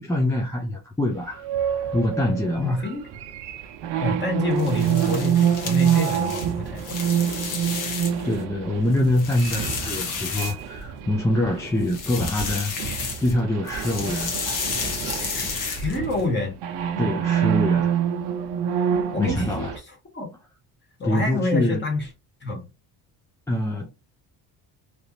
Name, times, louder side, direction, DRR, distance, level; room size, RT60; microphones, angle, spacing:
voice 1, 0.0-1.5 1.9-2.9 8.2-12.7 13.0-14.3 15.0-15.1 17.0-18.0 19.2-19.7 21.0-21.8 23.5-23.9, left 1 dB, 10° left, 0.5 m, -25 dB
sound 1, 1.4-12.4 12.8-19.8, right 9 dB, 80° right, 0.7 m, -26 dB
voice 2, 2.6-3.0 4.0-7.0 15.3-16.5 19.1-20.3 21.0-22.1 22.4-22.7, left 2 dB, 25° left, 1.6 m, -27 dB
sound 2, 4.5-8.3 8.8-11.0 11.8-13.4 13.7-16.2, left 4 dB, 50° left, 1.2 m, -31 dB
3.3 x 3.0 x 2.6 m
cardioid pair, 115°, 40 cm